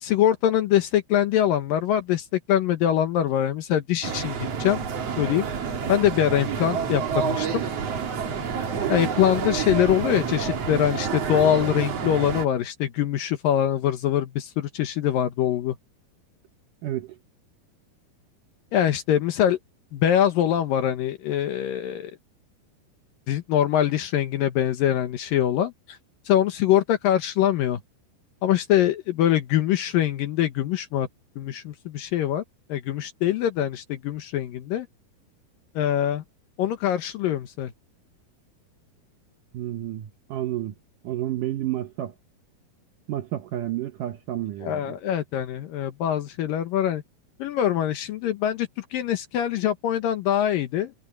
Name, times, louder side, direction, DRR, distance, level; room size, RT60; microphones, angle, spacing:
voice 1, 0.0-4.8 5.2-5.5 5.9-7.6 8.9-15.8 18.7-19.6 19.9-22.1 23.3-26.0 26.3-27.8 28.4-31.1 31.4-32.4 32.7-34.9 35.8-36.2 36.6-37.7 44.6-47.0 47.4-50.9, left 11 dB, 70° left, 2.4 m, -23 dB
sound 1, 4.0-12.5, right 6 dB, 45° right, 2.5 m, -28 dB
voice 2, 16.8-17.2 39.5-40.7 41.0-42.1 43.1-44.8, right 13 dB, 75° right, 2.0 m, -30 dB
omnidirectional pair, 4.8 m